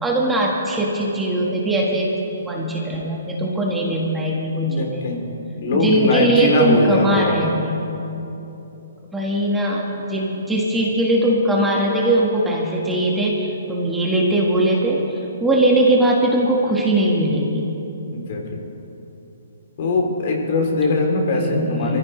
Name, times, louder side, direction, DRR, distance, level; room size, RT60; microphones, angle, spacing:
voice 1, 0.0-2.1 2.4-5.0 5.7-7.8 9.1-17.7 21.3-22.0, right 1 dB, 5° right, -4 dB, 1.6 m, -20 dB
voice 2, 4.6-5.2 5.6-7.5 18.1-18.6 19.8-22.0, left 2 dB, 50° left, 0 dB, 3.1 m, -21 dB
22.5 x 15.0 x 3.2 m, 3.0 s
hypercardioid pair, 155°, 0 cm